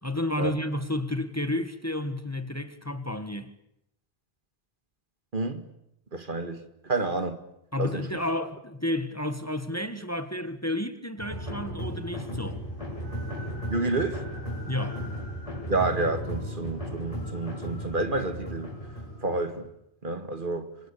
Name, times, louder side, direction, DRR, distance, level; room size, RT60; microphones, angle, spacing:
voice 1, 0.0-3.5 7.7-12.6 14.7-15.0, left 1 dB, 15° left, 1.7 m, -31 dB
voice 2, 5.3-5.7 6.1-7.4 7.8-8.1 13.7-14.3 15.7-18.7 19.2-19.7 20.0-20.7, right 2 dB, 50° right, 2.0 m, -29 dB
sound 1, 11.2-19.7, equal, 30° left, 6.8 m, -35 dB
27.0 x 25.0 x 8.6 m
omnidirectional pair, 1.1 m